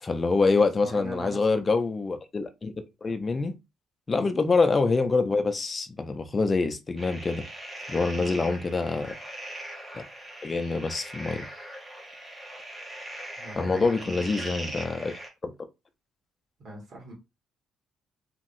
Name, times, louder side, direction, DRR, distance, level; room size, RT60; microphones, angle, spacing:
voice 1, 0.0-2.7 3.0-3.6 4.1-7.4 7.9-9.1 9.9-10.0 10.4-11.5 13.6-15.1 15.4-15.5, left 3 dB, 20° left, 0.4 m, -25 dB
voice 2, 0.8-1.5 4.1-4.3 8.1-8.5 13.4-14.5 16.6-17.1, right 2 dB, 55° right, 1.5 m, -42 dB
sound 1, 7.0-15.3, right 1 dB, 5° right, 1.0 m, -40 dB
2.9 x 2.8 x 2.6 m
cardioid pair, 160°, 0 cm